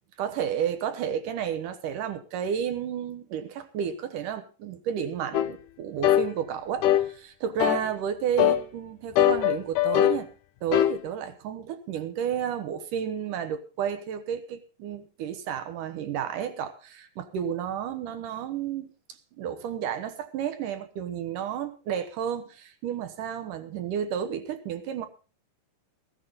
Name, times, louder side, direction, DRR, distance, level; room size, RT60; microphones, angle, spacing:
voice 1, 0.2-10.3 10.6-25.1, right 8 dB, 70° right, 9 dB, 2.6 m, -32 dB
sound 1, 5.3-5.5 6.0-6.3 6.8-7.1 7.6-7.9 8.4-8.6 9.2-10.2 10.7-11.0, left 12 dB, 75° left, 2.2 m, -21 dB
15.0 x 13.0 x 4.0 m, 0.33 s
omnidirectional pair, 3.9 m